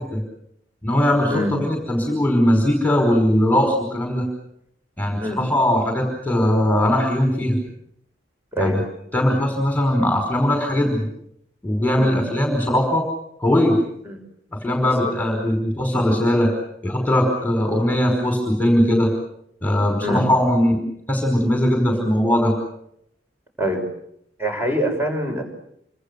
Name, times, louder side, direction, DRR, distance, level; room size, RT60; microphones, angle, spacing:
voice 1, 0.8-4.3 5.0-7.6 8.6-8.8 9.1-11.0 11.6-13.1 13.4-13.8 14.6-16.5 16.8-19.1 19.6-20.8 21.1-22.5, left 1 dB, 10° left, 3 dB, 5.1 m, -19 dB
voice 2, 24.4-25.4, equal, 10° right, 3 dB, 6.4 m, -24 dB
28.0 x 26.0 x 7.0 m, 0.75 s
head